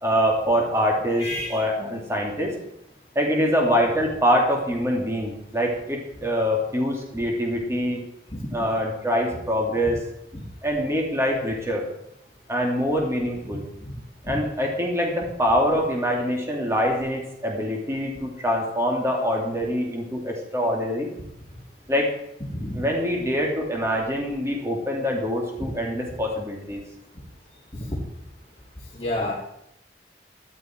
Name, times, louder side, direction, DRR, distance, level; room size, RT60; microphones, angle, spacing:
voice 1, 0.0-2.5 3.1-8.0 8.5-10.0 10.6-11.9 12.5-13.6 14.2-21.1 21.9-22.1 22.7-26.8, equal, 15° right, 0 dB, 2.8 m, -24 dB
voice 2, 1.2-1.6 8.3-8.5 10.3-10.4 13.8-13.9 22.5-22.8 27.7-28.0 28.9-29.3, left 1 dB, 25° left, -8 dB, 3.4 m, -30 dB
14.0 x 11.5 x 4.6 m, 0.82 s
head